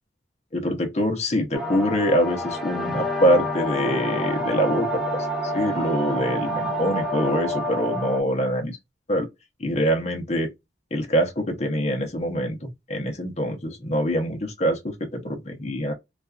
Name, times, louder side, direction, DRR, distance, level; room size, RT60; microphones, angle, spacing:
voice 1, 0.5-5.0 5.5-8.8 9.1-9.3 9.6-10.5 10.9-15.9, equal, 35° left, 0.8 m, -24 dB
sound 1, 1.5-8.2, equal, ahead, 0.5 m, -28 dB
2.5 x 2.4 x 2.2 m
head